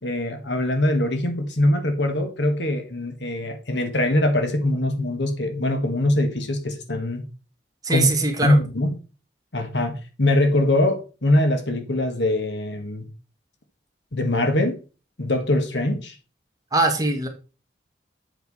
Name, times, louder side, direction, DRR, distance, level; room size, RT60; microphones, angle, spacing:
voice 1, 0.0-7.2 7.9-8.1 8.4-8.9 9.5-13.1 14.1-14.8 15.2-16.1, left 1 dB, 70° left, 1.5 m, -22 dB
voice 2, 7.8-8.6 16.7-17.3, right 2 dB, 20° right, 1.4 m, -21 dB
7.9 x 4.6 x 5.4 m
head